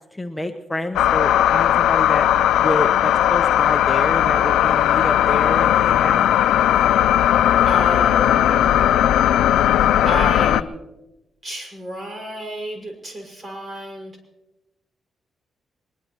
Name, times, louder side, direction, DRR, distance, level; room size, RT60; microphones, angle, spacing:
voice 1, 0.1-2.3 2.6-6.3, left 1 dB, 10° left, 5 dB, 0.9 m, -28 dB
sound 1, 1.0-10.6, left 11 dB, 90° left, 0.4 m, -17 dB
voice 2, 7.7-8.9 10.0-10.7 11.4-14.1, equal, 35° right, 3 dB, 5.9 m, -31 dB
22.0 x 21.0 x 3.0 m, 0.99 s
cardioid pair, 90°, 0 cm